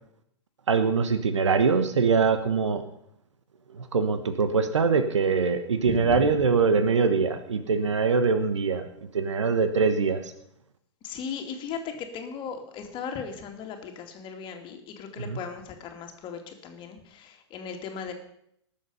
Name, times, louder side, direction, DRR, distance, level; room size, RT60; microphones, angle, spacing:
voice 1, 0.7-2.8 3.7-8.8 9.1-10.3 15.3-15.4, right 5 dB, 90° right, 9 dB, 1.2 m, -23 dB
voice 2, 5.9-6.4 11.0-18.1, left 6 dB, 35° left, 4 dB, 2.5 m, -37 dB
18.5 x 7.3 x 5.5 m, 0.74 s
hypercardioid pair, 115°, 15 cm